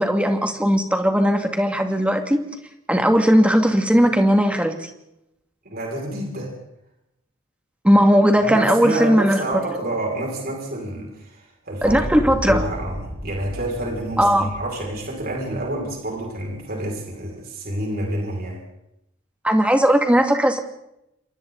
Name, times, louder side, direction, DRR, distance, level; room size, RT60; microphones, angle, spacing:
voice 1, 0.0-2.4 2.9-4.9 7.8-9.4 11.8-12.6 14.2-14.5 19.4-20.6, equal, 5° right, 4 dB, 2.4 m, -17 dB
voice 2, 5.6-6.5 8.4-12.0 12.5-13.0 13.2-18.6, right 1 dB, 45° right, -1 dB, 6.2 m, -28 dB
sound 1, 11.8-15.8, equal, 30° right, 7.6 m, -33 dB
29.0 x 26.5 x 4.1 m, 0.83 s
head